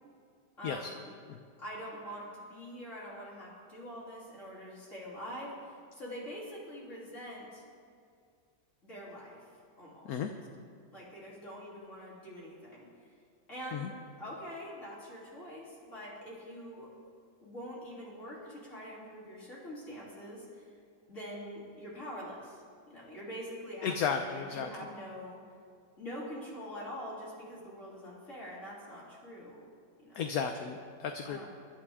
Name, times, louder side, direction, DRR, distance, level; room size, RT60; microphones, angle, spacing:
voice 1, 0.6-1.1 1.6-7.6 8.8-9.4 9.8-10.1 10.9-12.9 13.5-16.9 17.4-20.7 21.1-25.4 26.0-29.7 30.0-30.2 31.3-31.5, equal, 45° left, -6 dB, 3.6 m, -44 dB
voice 2, 23.8-24.7 30.2-31.5, left 6 dB, 65° left, 6 dB, 1.1 m, -34 dB
24.5 x 11.5 x 3.6 m, 2.3 s
omnidirectional pair, 1.9 m